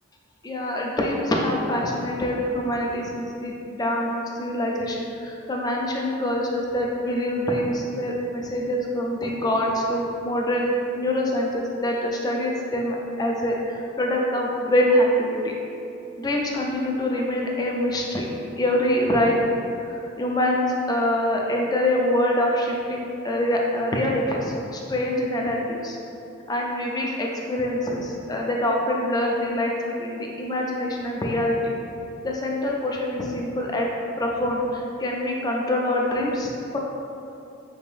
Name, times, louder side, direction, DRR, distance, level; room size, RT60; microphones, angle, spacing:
voice 1, 0.4-10.7 11.0-15.5 16.2-18.3 18.6-19.4 19.8-26.0 26.5-31.7 32.2-33.9 34.2-36.8, left 1 dB, 20° left, -1 dB, 0.4 m, -25 dB
4.3 x 3.3 x 2.5 m, 2.7 s
head